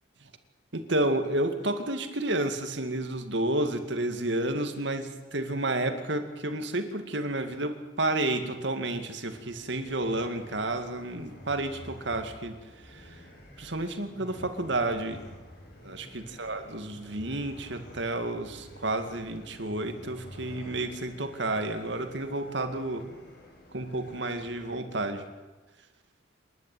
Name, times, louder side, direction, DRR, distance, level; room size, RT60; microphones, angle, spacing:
voice 1, 0.7-12.5 12.8-13.2 13.6-15.2 15.8-23.0 23.7-25.2, right 2 dB, 70° right, 7 dB, 2.2 m, -31 dB
sound 1, 9.3-24.8, equal, 55° left, 7.9 m, -50 dB
27.5 x 11.5 x 9.2 m, 1.2 s
head